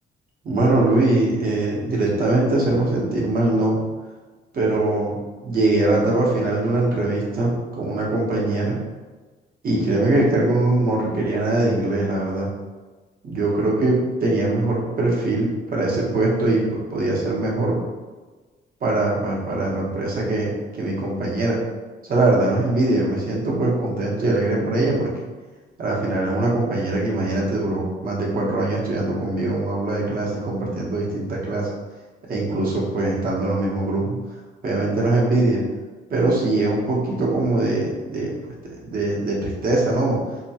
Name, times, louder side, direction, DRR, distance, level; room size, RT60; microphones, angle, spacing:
voice 1, 0.4-3.8 4.5-5.1 5.4-8.8 9.6-12.5 13.2-17.8 18.8-20.5 20.8-21.6 22.0-25.1 25.8-31.7 32.3-34.1 34.6-35.6 36.1-38.3 38.8-40.2, right 2 dB, 45° right, -4 dB, 0.9 m, -22 dB
2.8 x 2.2 x 2.8 m, 1.3 s
cardioid pair, 90°, 20 cm